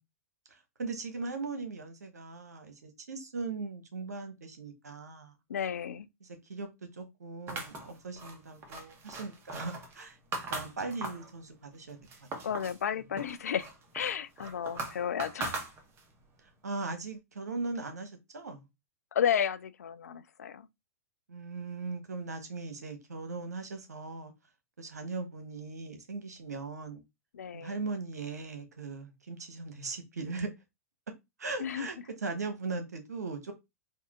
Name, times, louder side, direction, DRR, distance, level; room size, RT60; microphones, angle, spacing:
voice 1, 0.8-5.3 6.2-10.2 10.5-12.0 16.6-18.7 21.3-24.3 24.8-27.0 27.5-30.5 31.4-33.5, right 3 dB, 80° right, 1.1 m, -39 dB
voice 2, 5.5-6.1 12.4-13.7 13.9-15.6 19.1-20.7 27.3-27.8 31.6-31.9, left 8 dB, 75° left, 0.5 m, -32 dB
sound 1, 7.5-11.3 11.7-12.8 13.2-16.2, right 3 dB, 30° right, 1.1 m, -40 dB
3.7 x 2.7 x 3.5 m
hypercardioid pair, 105°, 9 cm